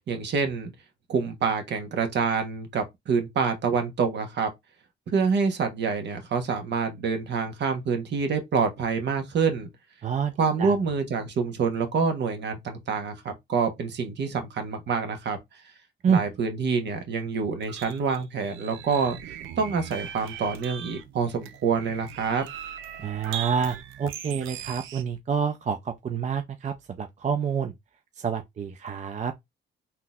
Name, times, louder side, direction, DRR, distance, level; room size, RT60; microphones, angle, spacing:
voice 1, 0.1-0.7 1.1-4.5 5.1-9.7 10.4-15.4 16.1-19.2 19.6-22.5, right 5 dB, 60° right, 1.1 m, -27 dB
voice 2, 10.0-10.3 10.6-10.8 16.0-16.2 23.0-27.7 28.2-29.3, right 6 dB, 35° right, 0.5 m, -28 dB
sound 1, 17.6-25.0, right 9 dB, 80° right, 0.6 m, -39 dB
3.7 x 2.8 x 2.4 m
cardioid pair, 90°, 20 cm